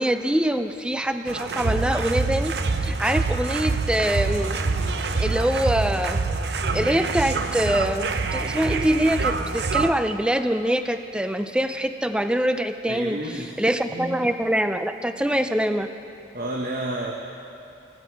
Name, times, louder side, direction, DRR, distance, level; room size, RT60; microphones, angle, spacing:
voice 1, 0.0-2.5 2.8-4.6 5.2-6.2 6.7-13.2 13.6-15.9, right 1 dB, 5° right, 9 dB, 0.5 m, -24 dB
sound 1, 1.3-9.9, right 3 dB, 60° right, 0.7 m, -26 dB
voice 2, 12.9-13.6 13.9-14.2 16.3-17.1, right 1 dB, 45° right, 0 dB, 1.1 m, -30 dB
19.0 x 14.5 x 4.7 m, 2.7 s
head